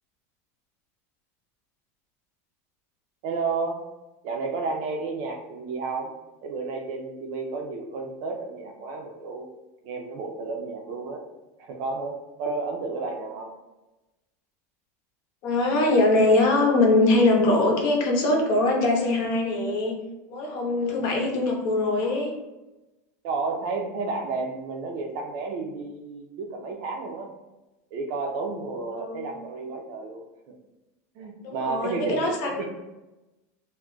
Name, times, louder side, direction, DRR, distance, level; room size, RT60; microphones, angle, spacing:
voice 1, 3.2-3.8 4.2-6.1 6.4-9.5 9.8-11.2 11.6-13.5 20.8-21.2 23.2-27.3 27.9-30.2 31.2-32.3 32.6-32.7, right 4 dB, 55° right, 2 dB, 0.5 m, -32 dB
voice 2, 15.4-20.0 20.3-22.3 28.9-29.3 31.4-32.6, left 2 dB, 50° left, 0 dB, 0.7 m, -22 dB
2.3 x 2.1 x 3.7 m, 1.0 s
supercardioid pair, 150°, 8 cm